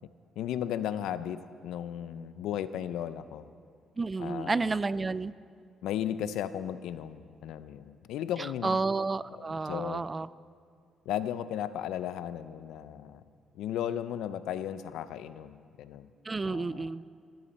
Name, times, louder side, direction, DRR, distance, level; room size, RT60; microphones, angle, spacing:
voice 1, 0.4-3.5 4.2-4.8 5.8-8.8 9.3-10.0 11.1-13.2 13.5-16.1 16.5-16.9, left 10 dB, 85° left, 13 dB, 0.5 m, -35 dB
voice 2, 4.0-5.3 8.4-10.3 16.2-17.0, right 3 dB, 25° right, 17 dB, 0.3 m, -31 dB
14.5 x 14.0 x 4.2 m, 2.3 s
cardioid pair, 90°, 0 cm